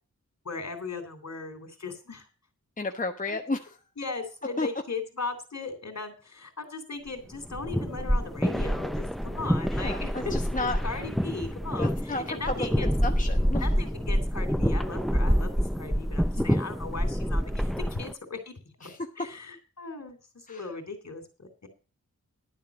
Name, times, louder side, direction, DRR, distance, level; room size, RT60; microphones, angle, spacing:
voice 1, 0.5-2.3 3.3-3.4 4.0-12.9 13.6-18.5 18.8-21.7, left 4 dB, 55° left, 8 dB, 3.4 m, -38 dB
voice 2, 2.8-3.8 4.6-4.7 9.7-10.8 11.8-13.7 16.4-16.6 18.8-19.0 20.5-20.6, left 2 dB, 25° left, 4 dB, 1.1 m, -33 dB
sound 1, 7.3-18.1, equal, ahead, 0.5 m, -27 dB
12.0 x 7.4 x 6.1 m, 0.34 s
wide cardioid pair, 75°, 32 cm